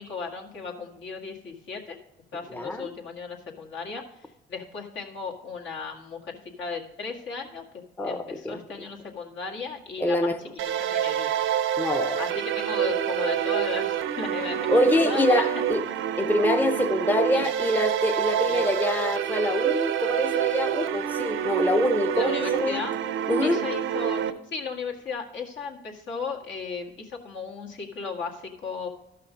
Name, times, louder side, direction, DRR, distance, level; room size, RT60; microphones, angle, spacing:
voice 1, 0.0-2.0 2.3-7.7 8.0-10.3 10.8-11.4 12.2-15.5 17.3-17.5 18.4-18.7 22.1-22.9 23.4-28.9, left 5 dB, 70° left, -1 dB, 2.0 m, -36 dB
voice 2, 2.5-2.9 8.0-8.6 10.0-10.4 11.8-12.2 14.5-15.8 16.2-22.8 23.3-23.6, left 1 dB, 10° left, 7 dB, 0.7 m, -25 dB
sound 1, 10.6-24.3, right 10 dB, 85° right, 0.7 m, -27 dB
13.0 x 5.8 x 5.1 m, 0.92 s
cardioid pair, 90°, 20 cm